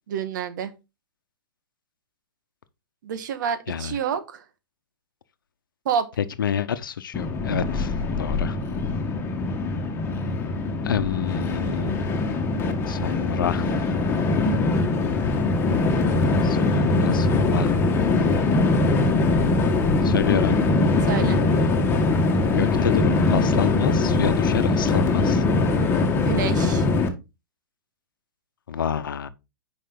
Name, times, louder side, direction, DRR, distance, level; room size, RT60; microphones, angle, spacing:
voice 1, 0.1-0.7 3.0-4.4 5.8-6.1 21.1-21.4 26.2-26.8, right 7 dB, 65° right, 1.7 m, -28 dB
voice 2, 6.2-8.6 10.8-12.0 12.9-13.7 16.4-17.7 20.0-20.6 22.5-25.4 28.7-29.3, left 8 dB, 75° left, 0.9 m, -28 dB
Train, 7.1-27.1, left 3 dB, 20° left, 1.8 m, -22 dB
9.3 x 5.4 x 3.9 m
hypercardioid pair, 120°, 11 cm